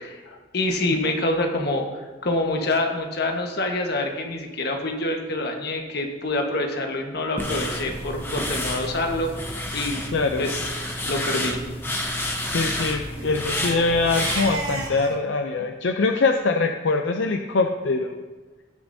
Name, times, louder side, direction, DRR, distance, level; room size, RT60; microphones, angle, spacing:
voice 1, 0.5-9.5 9.7-10.0 10.4-10.6 11.1-11.6, left 2 dB, 60° left, 2 dB, 1.3 m, -26 dB
sound 1, 7.4-14.9, left 1 dB, 10° left, 0.9 m, -30 dB
Crying sobbing, 9.2-9.3 9.6-9.7 10.0-10.3 10.7-11.0 12.1-15.2, right 3 dB, 50° right, 1.6 m, -36 dB
voice 2, 10.1-10.5 12.4-18.2, left 3 dB, 80° left, 4 dB, 0.6 m, -23 dB
18.5 x 6.8 x 2.7 m, 1.3 s
head